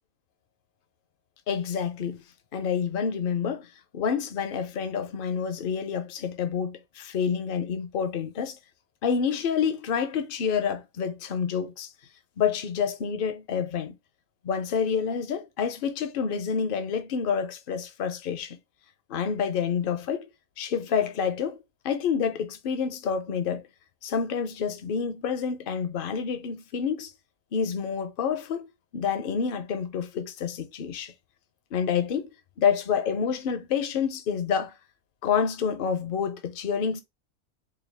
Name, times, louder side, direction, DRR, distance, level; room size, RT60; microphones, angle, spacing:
voice 1, 1.5-2.2 2.5-3.7 3.9-8.6 9.0-11.9 12.4-13.9 14.4-18.6 19.1-20.3 20.6-23.7 24.0-27.1 27.5-28.7 28.9-31.1 31.7-32.3 32.6-34.8 35.2-37.0, left 7 dB, 50° left, 0.7 m, -28 dB
4.6 x 2.3 x 3.4 m
omnidirectional pair, 1.5 m